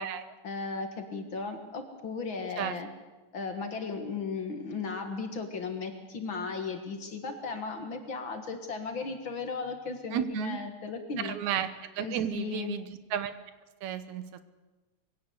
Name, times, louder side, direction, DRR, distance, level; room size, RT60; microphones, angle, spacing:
voice 1, 0.4-2.9 3.3-11.4 12.0-12.7, left 4 dB, 50° left, 6 dB, 2.1 m, -36 dB
voice 2, 10.1-10.6 11.2-11.7 11.9-13.3 13.8-14.4, right 10 dB, 80° right, 12 dB, 2.3 m, -33 dB
22.5 x 16.5 x 8.2 m, 1.2 s
omnidirectional pair, 3.3 m